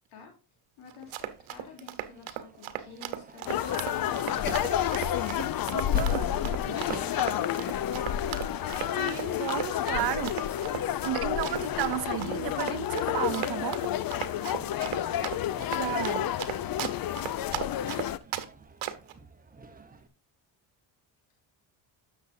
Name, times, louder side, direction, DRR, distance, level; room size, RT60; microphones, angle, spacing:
voice 1, 0.8-7.8 14.5-15.4, left 5 dB, 85° left, 3.2 m, -50 dB
Run, 0.9-18.5 18.8-19.1, right 13 dB, 70° right, 1.1 m, -36 dB
Crowd / Fireworks, 1.1-20.1, right 3 dB, 15° right, 1.0 m, -49 dB
sound 1, 3.5-18.2, left 11 dB, 45° left, 0.6 m, -30 dB
voice 2, 5.7-6.6 8.9-10.7 11.0-13.8 15.7-16.3, right 15 dB, 50° right, 0.5 m, -33 dB
10.5 x 7.2 x 2.6 m
cardioid pair, 90°, 50 cm